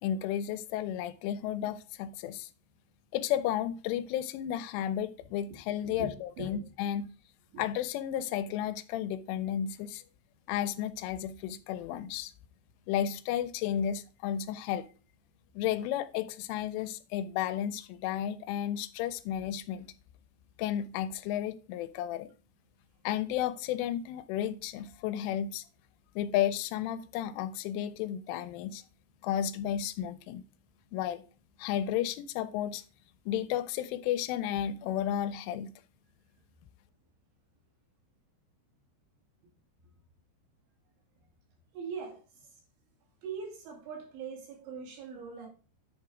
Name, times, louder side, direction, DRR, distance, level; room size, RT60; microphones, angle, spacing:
voice 1, 0.0-2.5 3.1-7.1 7.6-10.0 10.5-12.3 12.9-14.9 15.5-19.9 20.6-22.3 23.0-25.6 26.2-28.8 29.2-30.4 30.9-31.2 31.6-32.8 33.3-35.7, left 10 dB, 85° left, 3.1 m, -33 dB
voice 2, 6.4-6.7 7.5-7.6 41.7-42.2 43.2-45.5, right 5 dB, 70° right, 4.8 m, -41 dB
9.9 x 4.7 x 4.9 m
omnidirectional pair, 5.6 m